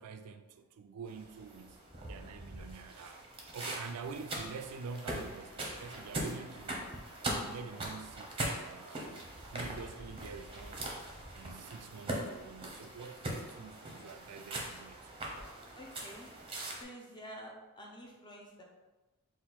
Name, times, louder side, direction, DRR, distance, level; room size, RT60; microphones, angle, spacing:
voice 1, 0.0-1.8 2.1-3.2 3.5-6.9 7.4-10.9 11.3-15.0, right 5 dB, 80° right, 0.3 m, -47 dB
sound 1, 1.1-16.8, right 1 dB, 25° right, 0.7 m, -41 dB
voice 2, 15.7-16.3 16.8-18.6, equal, 20° left, 0.7 m, -49 dB
4.2 x 2.5 x 4.0 m
head